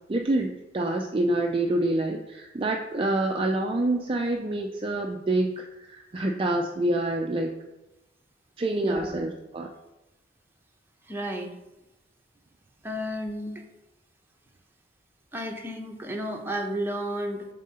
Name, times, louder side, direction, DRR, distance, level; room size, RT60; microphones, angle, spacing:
voice 1, 0.1-7.5 8.6-9.7, right 2 dB, 30° right, 2 dB, 0.4 m, -27 dB
voice 2, 8.8-9.2 11.0-11.5 12.8-13.6 15.3-17.5, equal, 10° right, 2 dB, 0.9 m, -32 dB
7.4 x 3.7 x 5.5 m, 0.96 s
head